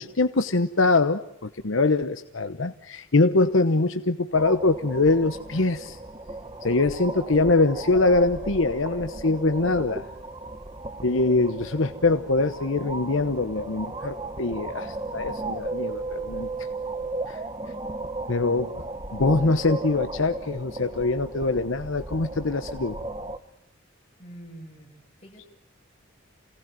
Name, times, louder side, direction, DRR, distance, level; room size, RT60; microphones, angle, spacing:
voice 1, 0.0-6.0 6.6-10.1 11.0-16.5 17.3-17.4 18.3-18.7 19.1-23.0, left 3 dB, 75° left, 9 dB, 1.0 m, -23 dB
sound 1, 4.3-23.4, right 2 dB, 25° right, 1.1 m, -35 dB
voice 2, 24.2-25.5, right 1 dB, 30° left, 0 dB, 8.0 m, -45 dB
28.5 x 18.5 x 9.4 m, 0.82 s
head